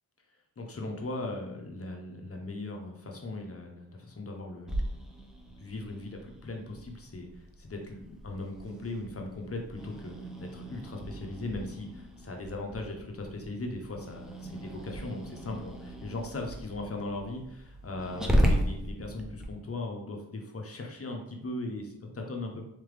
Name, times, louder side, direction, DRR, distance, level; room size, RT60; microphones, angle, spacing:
voice 1, 0.6-4.7 5.5-7.3 7.6-22.6, left 2 dB, 35° left, 2 dB, 0.8 m, -38 dB
Growling, 4.7-19.5, equal, ahead, 0.6 m, -35 dB
3.6 x 3.4 x 3.3 m, 0.82 s
wide cardioid pair, 85°, 39 cm